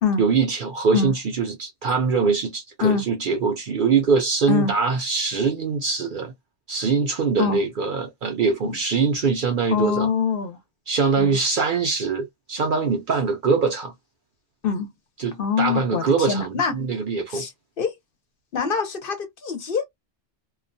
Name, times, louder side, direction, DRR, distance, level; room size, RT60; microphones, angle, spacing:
voice 1, 0.2-6.3 6.7-10.1 10.9-13.9 15.2-17.5, right 5 dB, 60° right, 0.6 m, -23 dB
voice 2, 9.7-10.6 11.2-11.4 14.6-14.9 15.4-16.8 17.3-17.5 17.8-18.0 18.5-19.8, left 6 dB, 55° left, 0.8 m, -24 dB
2.3 x 2.1 x 2.6 m
omnidirectional pair, 1.2 m